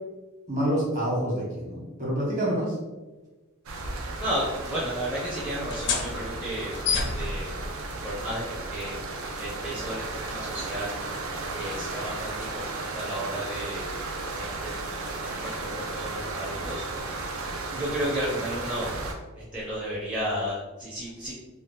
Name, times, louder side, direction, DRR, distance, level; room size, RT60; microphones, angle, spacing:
voice 1, 0.5-2.7, equal, 40° right, -4 dB, 1.2 m, -27 dB
sound 1, 3.7-19.1, right 3 dB, 80° right, 0.5 m, -34 dB
voice 2, 4.2-7.5 8.0-11.0 11.5-13.9 14.3-16.8 17.7-18.9 19.4-21.3, equal, 5° right, -8 dB, 0.5 m, -33 dB
sound 2, 5.6-12.8, left 4 dB, 55° left, 0.4 m, -35 dB
2.7 x 2.2 x 3.4 m, 1.2 s
head